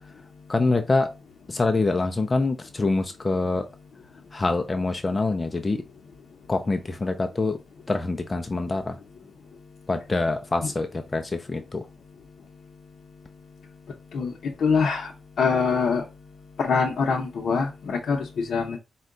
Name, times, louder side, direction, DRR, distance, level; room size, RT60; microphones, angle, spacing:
voice 1, 0.5-1.1 1.5-3.7 4.3-5.8 6.5-7.6 7.9-9.0 9.9-11.9, left 3 dB, 20° left, 0.3 m, -25 dB
voice 2, 14.6-15.1 15.4-16.0 16.6-18.8, left 5 dB, 60° left, 0.6 m, -24 dB
4.5 x 2.2 x 3.7 m
wide cardioid pair, 175°, 0 cm